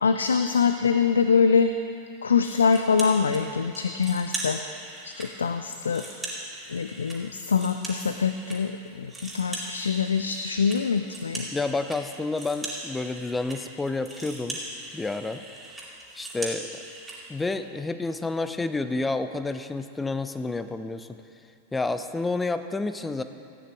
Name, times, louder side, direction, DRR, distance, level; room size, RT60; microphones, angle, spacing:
voice 1, 0.0-1.7 2.2-4.6 5.0-6.1 6.7-11.5, left 5 dB, 70° left, 8 dB, 0.3 m, -24 dB
sound 1, 2.7-3.4 3.7-5.3 5.7-8.6 8.9-17.2, right 2 dB, 10° right, 2.3 m, -39 dB
voice 2, 11.5-14.6 14.9-15.4 16.1-16.7 17.3-21.1 21.7-23.2, left 3 dB, 10° left, 10 dB, 0.5 m, -29 dB
14.5 x 9.3 x 3.4 m, 2.4 s
figure-of-eight pair, 90°, 0 cm